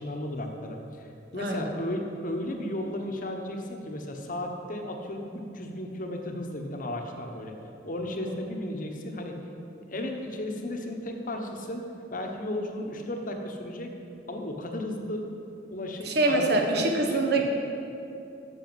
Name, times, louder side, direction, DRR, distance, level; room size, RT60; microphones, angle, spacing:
voice 1, 0.0-7.5 7.8-9.4 9.9-11.8 12.1-13.9 14.3-15.3 15.7-16.6 16.9-17.4, left 1 dB, 50° left, 3 dB, 1.1 m, -34 dB
voice 2, 1.4-1.7 8.2-8.4 16.0-17.4, right 2 dB, 60° right, 2 dB, 1.3 m, -25 dB
9.4 x 6.5 x 7.8 m, 2.7 s
head